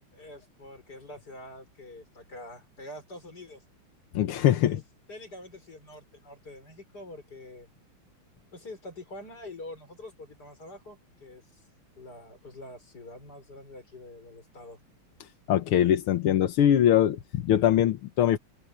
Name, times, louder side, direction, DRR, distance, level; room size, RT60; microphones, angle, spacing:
voice 1, 0.1-3.6 4.3-4.8 5.1-7.7 8.5-11.7 12.0-14.8, left 1 dB, 45° left, 6.5 m, -45 dB
voice 2, 4.1-4.8 15.5-18.4, left 11 dB, 85° left, 1.9 m, -22 dB
omnidirectional pair, 2.3 m